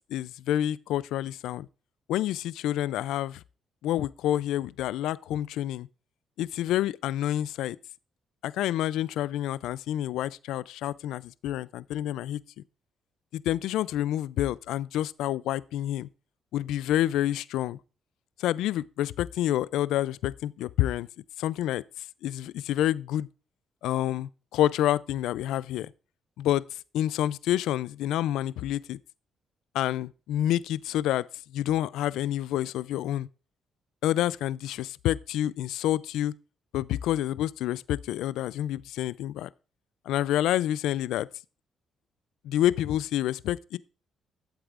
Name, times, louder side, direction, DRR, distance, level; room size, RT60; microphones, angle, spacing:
voice 1, 0.1-1.7 2.1-3.4 3.8-5.9 6.4-7.8 8.4-12.4 13.3-16.1 16.5-17.8 18.4-21.1 21.4-21.8 22.2-23.3 23.8-25.9 26.4-29.0 29.7-31.3 31.5-33.3 34.0-36.3 36.7-39.5 40.1-41.3 42.4-43.8, left 12 dB, 90° left, 0.3 m, -28 dB
11.5 x 7.9 x 2.5 m
cardioid pair, 90°, 0 cm